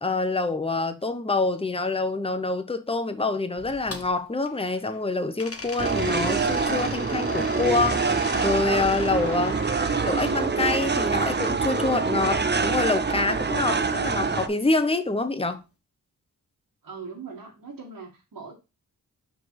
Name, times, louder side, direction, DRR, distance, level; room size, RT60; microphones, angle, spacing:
voice 1, 0.0-9.6 10.0-15.6, left 3 dB, 15° left, 0.9 m, -26 dB
sound 1, 3.6-5.0 5.4-11.5 12.6-13.8, left 3 dB, 40° left, 1.4 m, -40 dB
sound 2, 5.8-14.5, right 4 dB, 30° right, 0.7 m, -25 dB
voice 2, 13.5-13.9 16.8-18.5, right 5 dB, 80° right, 2.1 m, -41 dB
6.0 x 4.7 x 4.8 m
wide cardioid pair, 65°, 34 cm